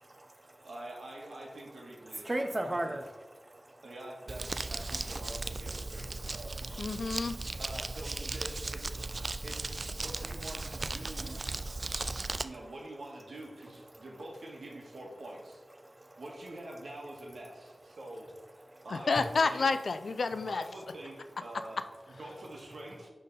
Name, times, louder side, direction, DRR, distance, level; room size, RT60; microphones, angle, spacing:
voice 1, 0.5-3.0 3.8-6.6 7.6-9.0 9.4-11.4 12.4-15.5 16.2-17.7 18.0-18.3 18.8-19.7 20.5-21.8 22.1-23.1, right 1 dB, 75° right, -1 dB, 1.6 m, -46 dB
voice 2, 2.2-3.0 3.3-3.8 7.5-7.6 9.2-9.4 11.8-12.4 18.7-18.8 19.2-19.3, right 1 dB, 30° right, 7 dB, 0.8 m, -36 dB
Crumpling crinkling, 4.3-12.4, right 2 dB, 50° right, 0.3 m, -37 dB
voice 3, 6.8-7.4 18.9-20.6, left 4 dB, 75° left, 11 dB, 0.4 m, -29 dB
11.0 x 3.8 x 4.0 m, 1.3 s
cardioid pair, 55°, 0 cm